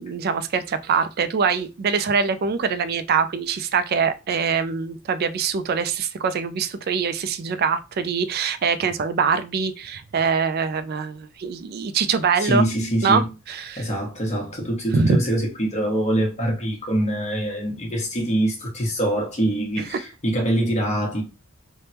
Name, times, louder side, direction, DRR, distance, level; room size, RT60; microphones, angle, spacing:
voice 1, 0.0-12.6 13.0-13.8 14.9-15.2, right 6 dB, 50° right, 0.3 m, -23 dB
voice 2, 12.4-13.3 13.8-21.2, right 1 dB, 35° left, 1.1 m, -24 dB
3.3 x 2.1 x 2.8 m
head